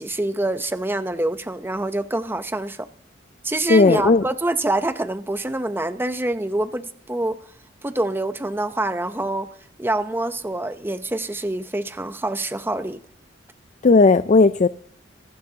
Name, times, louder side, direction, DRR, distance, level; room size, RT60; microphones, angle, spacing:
voice 1, 0.0-2.9 3.4-7.4 7.8-9.5 9.8-13.0, right 2 dB, 10° right, 10 dB, 0.7 m, -26 dB
voice 2, 3.7-4.2 13.8-14.7, left 3 dB, 40° left, 13 dB, 0.4 m, -15 dB
25.5 x 12.0 x 2.8 m, 0.65 s
head